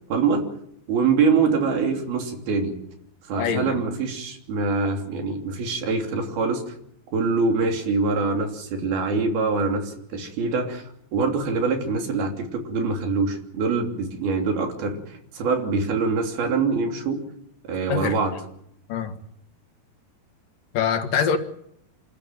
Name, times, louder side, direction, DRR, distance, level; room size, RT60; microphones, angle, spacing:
voice 1, 0.1-0.4 0.9-2.7 3.3-6.7 7.1-10.8 11.1-17.2 17.6-18.4, right 4 dB, 70° right, 5.0 m, -24 dB
voice 2, 3.4-3.8 17.9-18.1 18.9-19.1 20.7-21.4, left 7 dB, 65° left, 3.1 m, -24 dB
28.0 x 13.5 x 9.3 m
omnidirectional pair, 4.6 m